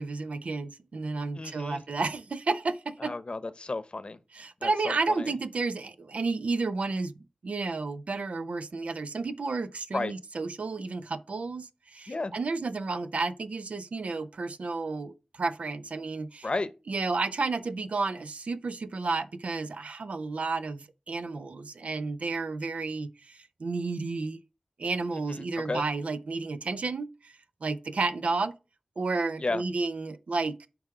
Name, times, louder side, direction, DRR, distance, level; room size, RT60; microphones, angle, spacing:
voice 1, 0.0-3.1 4.3-7.1 7.4-16.5 16.9-24.4 24.8-27.3 27.6-28.5 29.0-30.7, right 3 dB, 90° right, 0.6 m, -32 dB
voice 2, 1.4-1.8 3.0-4.2 4.6-5.3 9.9-10.1 12.1-12.3 16.4-16.7 25.3-25.8 29.4-29.6, left 3 dB, 55° left, 0.9 m, -33 dB
8.1 x 4.9 x 4.6 m
wide cardioid pair, 60°, 2 cm